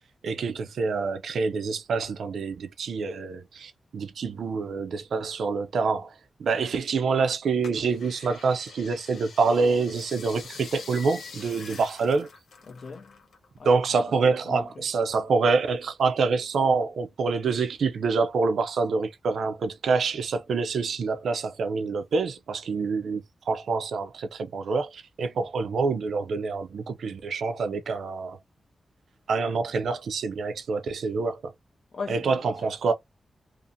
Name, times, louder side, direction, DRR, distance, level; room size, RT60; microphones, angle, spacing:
voice 1, 0.2-12.3 13.6-23.2 23.5-28.4 29.3-31.5 32.1-32.9, right 4 dB, 75° right, 0.3 m, -26 dB
sound 1, 7.6-13.5 13.7-15.0 15.5-16.3 16.8-16.9, left 5 dB, 90° left, 0.8 m, -45 dB
voice 2, 12.7-13.2 13.6-14.0 14.3-14.8 31.9-32.9, left 4 dB, 50° left, 0.3 m, -40 dB
2.5 x 2.4 x 2.5 m
wide cardioid pair, 175°, 0 cm